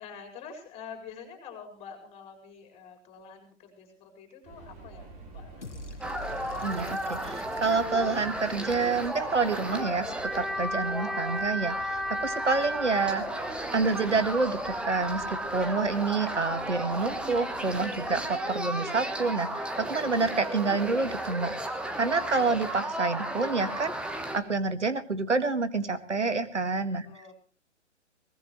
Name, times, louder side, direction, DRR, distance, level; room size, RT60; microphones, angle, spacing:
voice 1, 0.0-6.0 27.0-27.3, left 6 dB, 15° left, 5 dB, 5.1 m, -47 dB
Subway metro underground, 4.4-19.8, right 2 dB, 20° right, 4.2 m, -50 dB
sound 1, 5.6-9.7, left 1 dB, 75° left, 2.2 m, -46 dB
sound 2, 6.0-24.4, right 1 dB, 5° right, 1.1 m, -33 dB
voice 2, 6.6-13.4 13.7-21.5 22.0-23.9 24.3-27.1, right 4 dB, 75° right, 12 dB, 2.0 m, -28 dB
22.5 x 19.5 x 3.1 m, 0.37 s
figure-of-eight pair, 125°, 36 cm